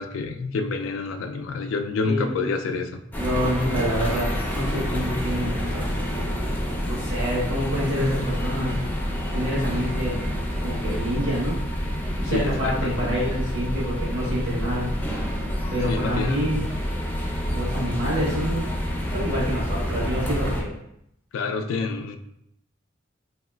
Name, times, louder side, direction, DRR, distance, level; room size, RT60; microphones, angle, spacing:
voice 1, 0.0-3.0 12.2-12.9 15.9-16.6 21.3-22.2, left 4 dB, 80° left, 7 dB, 0.3 m, -28 dB
voice 2, 2.0-2.6 3.2-6.0 6.9-8.8 9.3-10.3 10.6-11.6 12.2-14.9 15.7-16.6 17.5-18.6 19.1-20.8, equal, 60° right, -5 dB, 1.2 m, -27 dB
sound 1, 3.1-20.6, equal, 10° left, 0.4 m, -28 dB
3.0 x 2.8 x 2.2 m, 0.76 s
head